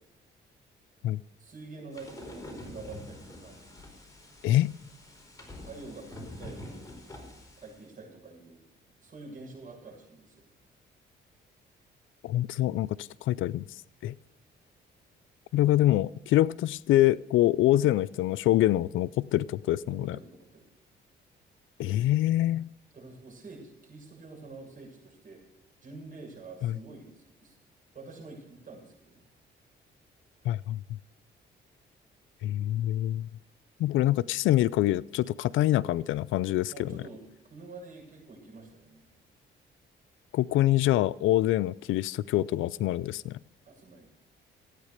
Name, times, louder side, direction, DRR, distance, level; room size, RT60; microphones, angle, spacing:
voice 1, 1.4-3.6 5.6-6.8 7.6-8.6 9.0-10.5 19.8-20.7 22.9-25.4 25.8-27.6 27.9-29.2 36.7-39.0 43.6-44.1, right 3 dB, 40° right, 0 dB, 7.3 m, -47 dB
sound 1, 1.9-7.8, left 1 dB, 15° left, 4.7 m, -46 dB
voice 2, 4.4-4.7 12.2-13.6 14.0-14.1 15.5-20.2 21.8-22.7 26.6-26.8 30.4-30.8 32.4-33.3 33.8-36.9 40.3-43.4, left 14 dB, 80° left, 19 dB, 0.5 m, -25 dB
15.5 x 9.1 x 6.6 m, 0.84 s
cardioid pair, 90°, 20 cm